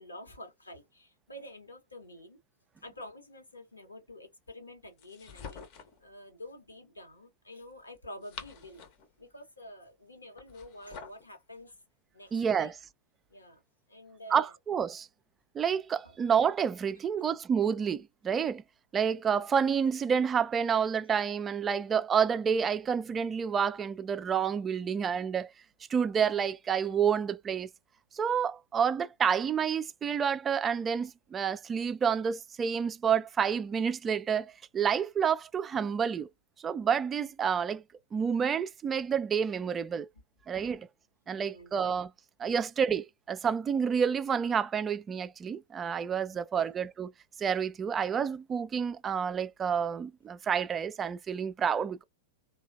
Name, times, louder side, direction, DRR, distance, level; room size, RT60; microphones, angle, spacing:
voice 1, 0.0-2.4 2.8-5.7 6.0-8.9 9.2-11.8 12.1-12.7 13.3-13.6 13.9-14.5 16.0-16.2 40.1-40.2 40.5-40.7 41.3-41.7 46.3-46.8, left 1 dB, 85° left, 1.1 m, -48 dB
sound 1, 5.0-6.0 8.0-9.1 10.4-11.3, left 6 dB, 45° left, 0.7 m, -47 dB
voice 2, 12.3-12.7 14.3-15.1 15.5-18.6 18.9-25.5 25.9-27.7 28.1-36.3 36.6-37.8 38.1-40.1 40.5-40.9 41.3-42.1 42.4-47.1 47.4-52.0, right 7 dB, 20° right, 0.3 m, -29 dB
3.2 x 2.3 x 2.5 m
figure-of-eight pair, 100°, 0 cm